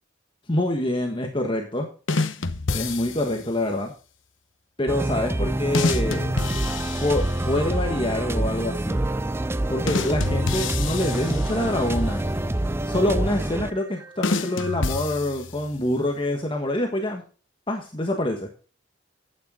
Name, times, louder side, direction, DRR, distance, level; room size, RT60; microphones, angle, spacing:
voice 1, 0.5-1.9 2.7-3.9 4.8-6.3 7.0-9.0 9.7-12.2 12.8-17.2 17.7-18.5, left 1 dB, 25° left, 3 dB, 1.4 m, -26 dB
sound 1, 2.1-3.5 5.7-7.7 9.9-12.0 14.2-15.8, left 3 dB, 80° left, 1.0 m, -28 dB
sound 2, 4.9-15.0, right 1 dB, 15° right, 0.4 m, -27 dB
11.5 x 9.0 x 3.8 m, 0.38 s
head